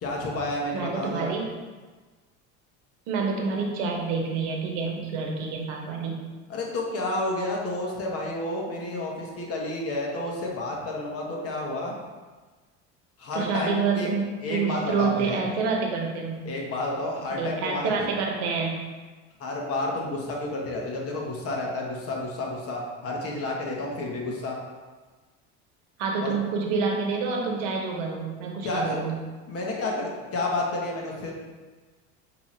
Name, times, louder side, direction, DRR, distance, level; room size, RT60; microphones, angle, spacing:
voice 1, 0.0-1.3 6.5-12.0 13.2-14.1 14.4-15.4 16.4-18.1 19.4-24.6 26.2-26.4 28.6-29.0 29.5-31.3, left 2 dB, 45° left, -1 dB, 1.2 m, -30 dB
voice 2, 0.7-1.4 3.1-6.2 13.3-16.4 17.4-18.8 26.0-29.1, right 4 dB, 80° right, 0 dB, 1.0 m, -28 dB
5.4 x 2.9 x 3.2 m, 1.3 s
supercardioid pair, 105°, 34 cm